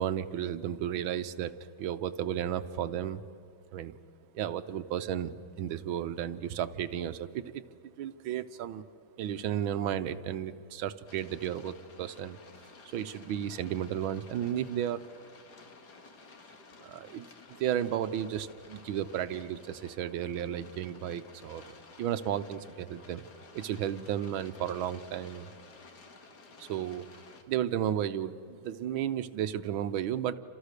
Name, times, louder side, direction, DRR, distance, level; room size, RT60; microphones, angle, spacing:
voice 1, 0.0-1.5 1.8-3.2 3.7-4.0 4.3-7.6 8.0-8.8 9.2-12.4 12.9-15.0 16.8-17.3 17.6-23.2 23.5-25.5 26.6-27.1 27.5-30.3, right 10 dB, 80° right, 12 dB, 1.6 m, -33 dB
sound 1, 11.1-27.4, left 4 dB, 55° left, 2.2 m, -54 dB
29.5 x 27.0 x 6.7 m, 2.4 s
omnidirectional pair, 2.2 m